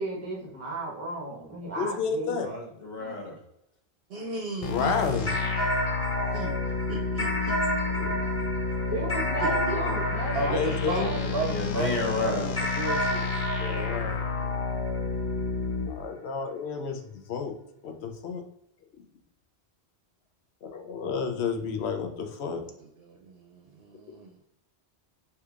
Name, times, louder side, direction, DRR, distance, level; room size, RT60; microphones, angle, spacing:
voice 1, 0.0-2.3 3.0-3.1 8.9-11.3, right 2 dB, 15° right, -2 dB, 0.7 m, -35 dB
voice 2, 1.6-2.5 4.7-5.3 7.9-8.2 10.5-11.1 13.6-14.2 15.9-17.5 17.8-18.4 20.6-22.6, left 6 dB, 75° left, 5 dB, 0.9 m, -31 dB
voice 3, 2.4-3.4 9.3-10.0 11.1-12.6, left 2 dB, 45° left, -1 dB, 1.1 m, -33 dB
voice 4, 4.1-5.6 6.3-6.5 6.9-7.5 10.3-13.3 22.6-24.4, right 3 dB, 70° right, 2 dB, 0.8 m, -35 dB
sound 1, 4.6-15.9, left 4 dB, 60° left, 0.3 m, -30 dB
sound 2, 5.3-11.9 12.6-15.3, equal, 15° left, 1.1 m, -32 dB
4.7 x 2.8 x 2.4 m, 0.78 s
omnidirectional pair, 1.1 m